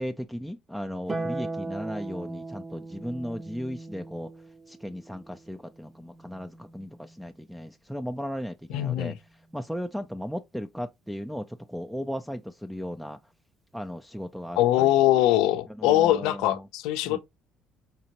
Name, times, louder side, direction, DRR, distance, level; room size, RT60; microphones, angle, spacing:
voice 1, 0.0-4.3 4.7-9.1 9.5-13.2 13.7-14.9 15.8-16.7 17.0-17.2, equal, ahead, 0.4 m, -36 dB
Harp, 1.1-7.6 9.2-10.2, right 2 dB, 25° right, 0.8 m, -39 dB
voice 2, 8.7-9.2 14.6-17.2, left 14 dB, 85° left, 0.5 m, -22 dB
5.2 x 2.7 x 2.9 m
supercardioid pair, 90°, 0 cm